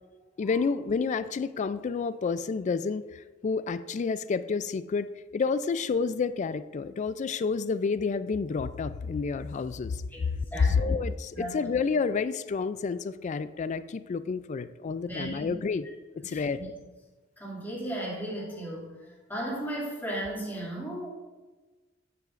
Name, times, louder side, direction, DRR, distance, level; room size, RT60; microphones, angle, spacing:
voice 1, 0.4-10.0 10.6-15.9 16.1-16.6, left 5 dB, 40° left, 14 dB, 0.3 m, -29 dB
voice 2, 10.5-10.9 11.3-11.7 15.0-15.5 16.2-16.7 17.4-18.9 19.3-21.1, right 1 dB, 10° left, -6 dB, 2.3 m, -35 dB
9.2 x 8.9 x 2.5 m, 1.3 s
head